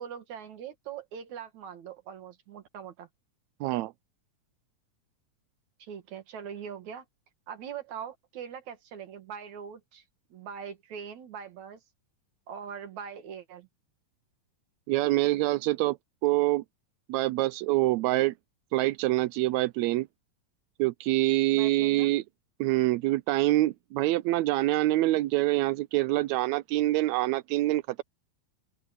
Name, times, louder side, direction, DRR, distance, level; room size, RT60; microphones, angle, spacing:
voice 1, 0.0-3.1 5.8-7.0 7.5-10.0 10.3-11.8 12.5-13.7 21.5-22.1, right 8 dB, 65° right, 3.1 m, -42 dB
voice 2, 3.6-3.9 14.9-16.0 16.2-16.6 17.1-18.3 18.7-20.1 20.8-22.2 22.6-28.0, right 17 dB, 80° right, 1.6 m, -25 dB
open air
omnidirectional pair, 3.6 m